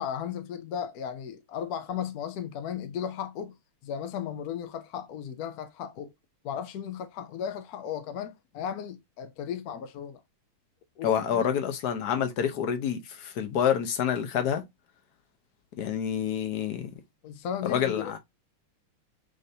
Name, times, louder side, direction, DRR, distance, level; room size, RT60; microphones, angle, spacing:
voice 1, 0.0-3.6 3.8-6.1 6.4-10.2 11.0-11.5 17.2-18.2, left 8 dB, 80° left, 0.8 m, -35 dB
voice 2, 11.0-14.6 15.8-16.9 17.6-18.2, left 8 dB, 60° left, 1.1 m, -27 dB
6.6 x 2.6 x 2.7 m
omnidirectional pair, 2.3 m